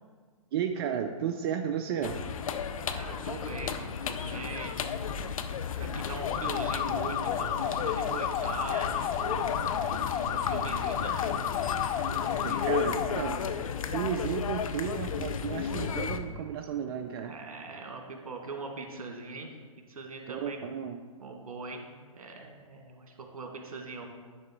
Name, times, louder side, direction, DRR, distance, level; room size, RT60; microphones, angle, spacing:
voice 1, 0.5-2.2 12.4-13.4 13.9-17.3 20.3-21.0, right 8 dB, 40° right, 5 dB, 0.5 m, -33 dB
sound 1, 2.0-16.2, left 7 dB, 70° left, 0.7 m, -34 dB
voice 2, 2.9-5.0 5.8-9.5 10.0-11.2 11.9-12.9 17.2-19.5 19.9-20.6 21.2-21.9 22.1-24.0, right 3 dB, 75° right, 3 dB, 1.7 m, -41 dB
sound 2, 6.2-13.1, left 9 dB, 20° left, 0.4 m, -32 dB
10.0 x 3.8 x 6.0 m, 1.5 s
hypercardioid pair, 130°, 18 cm